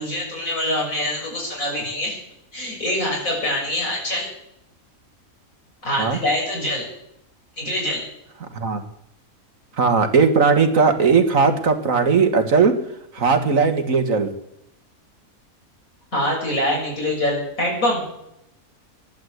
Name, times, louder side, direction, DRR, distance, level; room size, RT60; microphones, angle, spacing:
voice 1, 0.0-2.2 2.5-4.3 5.8-6.9 7.6-8.0 16.1-18.0, left 1 dB, 70° left, -1 dB, 7.0 m, -24 dB
voice 2, 9.8-12.8 13.1-14.3, right 5 dB, 70° right, 7 dB, 1.9 m, -18 dB
16.0 x 11.5 x 7.9 m, 0.80 s
omnidirectional pair, 1.5 m